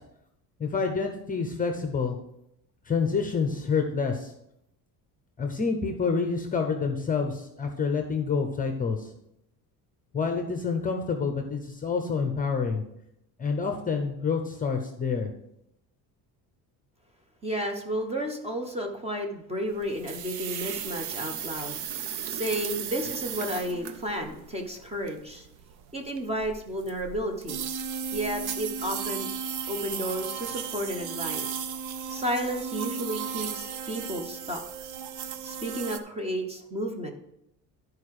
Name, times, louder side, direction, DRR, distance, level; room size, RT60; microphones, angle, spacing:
voice 1, 0.6-2.1 2.9-4.3 5.4-9.1 10.1-12.8 13.4-15.3, left 5 dB, 20° left, 5 dB, 0.8 m, -28 dB
voice 2, 17.4-21.8 22.3-25.5 25.9-27.6 28.1-29.3 29.7-31.6 32.1-34.6 35.4-37.1, equal, 15° right, 3 dB, 1.1 m, -32 dB
sound 1, 19.7-36.0, right 7 dB, 85° right, 0.9 m, -35 dB
12.0 x 4.8 x 4.8 m, 0.80 s
cardioid pair, 160°, 39 cm